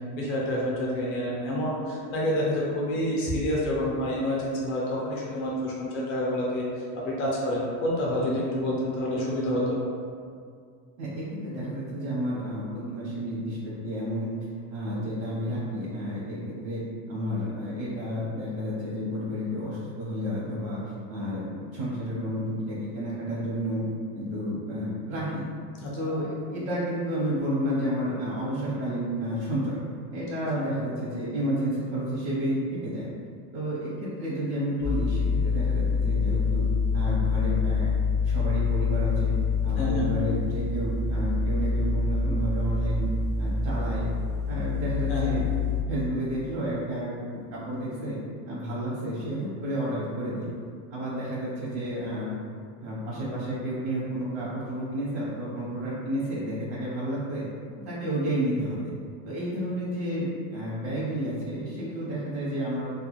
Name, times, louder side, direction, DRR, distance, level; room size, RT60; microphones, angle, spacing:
voice 1, 0.1-9.8 25.8-25.9 39.8-40.0 45.1-45.3, left 1 dB, 30° left, -4 dB, 0.5 m, -28 dB
voice 2, 11.0-14.3 14.7-16.8 17.1-23.8 24.1-25.4 25.9-29.8 30.1-33.1 33.5-36.6 36.9-37.9 38.2-39.3 39.6-43.1 43.4-44.1 44.5-45.4 45.9-48.2 48.5-50.6 50.9-52.3 52.8-57.4 57.8-58.9 59.2-62.9, equal, 85° right, -7 dB, 0.8 m, -31 dB
sound 1, 34.8-45.8, left 4 dB, 35° right, 0.4 m, -26 dB
2.3 x 2.2 x 2.9 m, 2.2 s
supercardioid pair, 160°, 45 cm